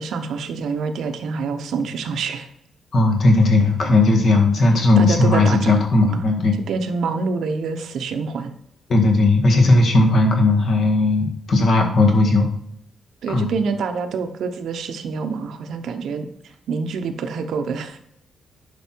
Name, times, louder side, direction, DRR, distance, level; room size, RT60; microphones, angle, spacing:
voice 1, 0.0-2.5 5.0-5.8 6.7-8.5 13.2-18.0, right 5 dB, 70° right, 8 dB, 0.9 m, -26 dB
voice 2, 2.9-6.6 8.9-12.5 13.3-13.5, left 2 dB, 45° left, 2 dB, 1.9 m, -16 dB
10.5 x 5.6 x 4.6 m, 0.74 s
wide cardioid pair, 170°, 0 cm